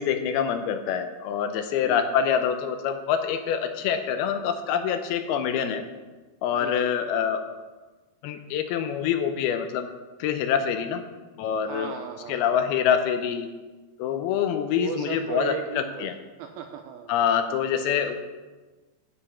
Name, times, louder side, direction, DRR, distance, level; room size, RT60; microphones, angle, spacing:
voice 1, 0.0-5.8 6.4-7.4 8.2-9.9 10.2-11.0 11.4-11.9 12.3-13.5 14.0-16.2 17.1-18.2, left 8 dB, 80° left, 8 dB, 2.6 m, -25 dB
voice 2, 1.8-2.2 6.6-6.9 11.6-12.6 14.7-16.1 16.4-17.1 18.0-18.2, right 8 dB, 80° right, 6 dB, 2.2 m, -36 dB
15.0 x 5.0 x 5.8 m, 1.3 s
omnidirectional pair, 4.6 m